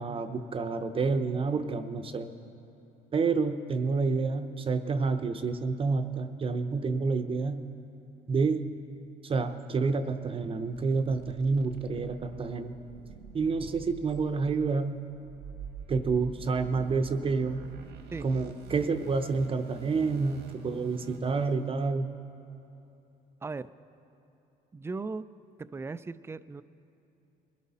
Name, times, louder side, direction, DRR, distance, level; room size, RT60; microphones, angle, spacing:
voice 1, 0.0-2.3 3.1-7.6 8.3-8.7 9.2-12.7 13.3-15.0 15.9-17.6 18.2-22.1, right 4 dB, 35° right, 8 dB, 0.7 m, -29 dB
sound 1, 10.7-21.5, right 6 dB, 85° right, 1.4 m, -47 dB
voice 2, 24.7-25.3 25.6-26.6, right 4 dB, 15° right, 14 dB, 0.3 m, -37 dB
21.5 x 12.5 x 4.2 m, 2.9 s
cardioid pair, 110°, 17 cm